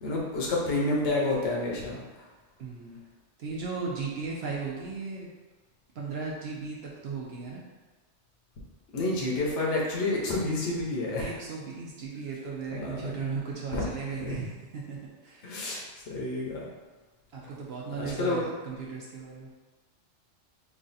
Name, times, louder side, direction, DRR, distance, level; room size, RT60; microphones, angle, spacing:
voice 1, 0.0-2.0 8.9-11.3 12.7-13.3 13.7-13.8 14.2-14.3 15.4-16.6 18.0-18.5, left 2 dB, 70° left, -3 dB, 1.0 m, -29 dB
voice 2, 2.6-3.0 3.4-5.3 5.9-7.6 11.2-15.6 17.3-19.5, right 4 dB, 60° right, -3 dB, 0.8 m, -36 dB
3.2 x 2.5 x 3.9 m, 1.3 s
omnidirectional pair, 1.3 m